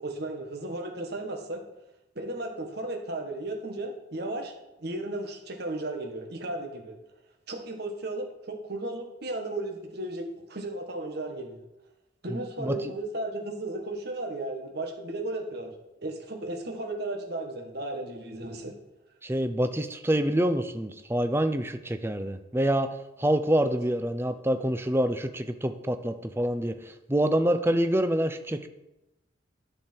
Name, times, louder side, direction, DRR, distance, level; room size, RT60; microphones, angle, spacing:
voice 1, 0.0-1.6 2.1-4.5 4.8-7.0 7.5-11.6 12.2-15.7 16.0-18.7 23.6-23.7, right 2 dB, 55° right, 3 dB, 1.6 m, -35 dB
voice 2, 12.3-12.8 19.2-22.9 23.2-28.7, right 1 dB, 10° right, 9 dB, 0.6 m, -26 dB
10.5 x 6.6 x 4.5 m, 0.96 s
head